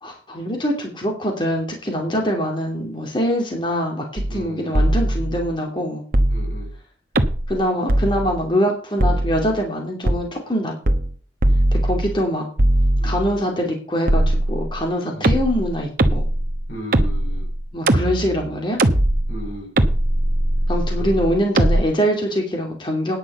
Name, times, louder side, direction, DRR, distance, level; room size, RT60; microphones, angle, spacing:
voice 1, 0.0-6.0 7.5-10.7 11.8-12.4 13.0-16.2 17.7-18.8 20.7-23.2, equal, 25° left, 1 dB, 2.7 m, -23 dB
sound 1, 4.2-4.5 4.7-5.6 6.1-6.8 7.1-7.6 7.9-8.5 9.0-9.6 10.0-10.2 10.9-11.2 11.4-12.2 12.6-13.4 14.1-14.8 15.2-21.8, right 1 dB, 50° right, 1.1 m, -20 dB
voice 2, 4.3-4.9 6.3-6.7 13.0-13.2 15.1-15.3 16.7-17.5 19.3-19.7 20.9-21.2, equal, 90° left, 2 dB, 6.6 m, -36 dB
10.0 x 6.2 x 7.9 m, 0.40 s
head